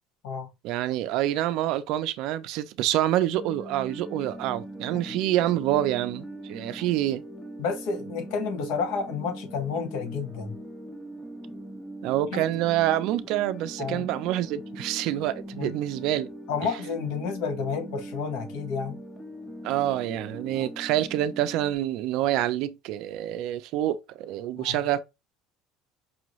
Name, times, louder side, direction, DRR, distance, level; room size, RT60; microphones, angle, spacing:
voice 1, 0.6-7.2 12.0-16.3 16.6-16.7 19.6-25.0, right 13 dB, 60° right, 0.5 m, -27 dB
sound 1, 3.3-21.8, right 1 dB, 5° left, 0.5 m, -41 dB
voice 2, 7.6-10.6 12.3-12.4 13.8-14.1 15.6-15.7 16.5-19.0 20.5-20.7 24.6-24.8, left 5 dB, 70° left, 1.0 m, -30 dB
5.4 x 2.5 x 3.0 m
cardioid pair, 170°, 0 cm